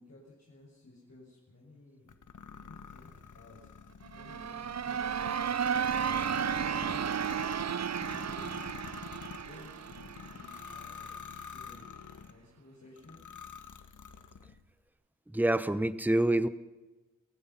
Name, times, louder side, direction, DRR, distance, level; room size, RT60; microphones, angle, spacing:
voice 1, 0.0-2.1 2.6-3.7 4.1-7.4 8.1-8.7 9.4-11.8 12.3-13.2, left 2 dB, 55° left, -5 dB, 6.8 m, -55 dB
sound 1, 2.1-12.4 13.0-14.6, left 6 dB, 75° left, 1.6 m, -47 dB
sound 2, 4.0-10.8, right 8 dB, 60° right, 0.6 m, -33 dB
voice 2, 15.3-16.5, right 1 dB, 5° right, 14 dB, 1.0 m, -26 dB
29.0 x 15.5 x 5.8 m, 1.1 s
wide cardioid pair, 100°, 30 cm